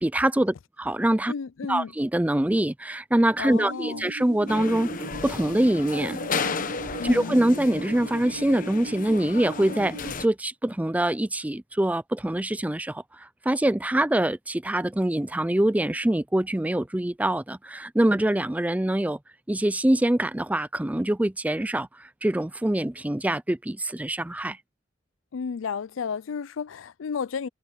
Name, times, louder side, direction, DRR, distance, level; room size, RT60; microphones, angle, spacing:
voice 1, 0.0-1.3 1.7-4.9 5.2-6.2 7.0-19.2 19.5-24.6, right 1 dB, 10° right, 0.4 m, -24 dB
voice 2, 1.3-1.9 3.4-4.1 7.0-7.4 25.3-27.5, left 6 dB, 90° left, 0.4 m, -32 dB
sound 1, 3.5-10.1, right 3 dB, 70° right, 0.6 m, -40 dB
sound 2, 4.5-10.3, left 4 dB, 45° left, 1.1 m, -33 dB
head